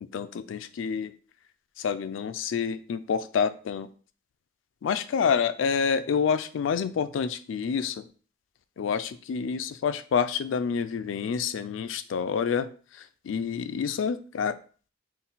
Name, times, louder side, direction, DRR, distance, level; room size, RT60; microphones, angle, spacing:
voice 1, 0.0-1.1 1.8-3.9 4.8-8.0 8.8-12.7 13.2-14.6, left 6 dB, 90° left, 13 dB, 0.3 m, -28 dB
3.9 x 2.2 x 3.9 m, 0.39 s
head